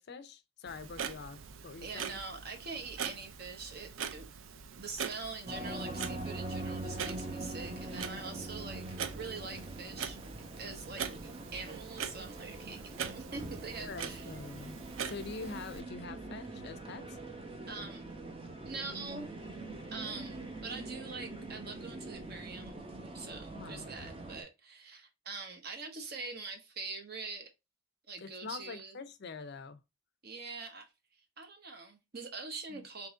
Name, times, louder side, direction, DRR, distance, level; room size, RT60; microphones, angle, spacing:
voice 1, 0.0-2.2 13.8-17.1 23.5-23.9 28.2-29.8 32.7-32.9, left 4 dB, 55° left, 0.5 m, -45 dB
Clock, 0.7-15.8, right 7 dB, 70° right, 0.4 m, -43 dB
voice 2, 1.8-4.3 4.8-8.8 9.1-10.2 10.6-14.3 17.7-18.1 18.6-19.3 19.9-22.8 23.1-27.5 28.1-29.0 30.2-30.8 31.4-33.1, right 4 dB, 50° right, 0.9 m, -44 dB
sound 1, 5.5-24.4, right 2 dB, 25° right, 0.7 m, -43 dB
3.7 x 3.0 x 3.6 m
head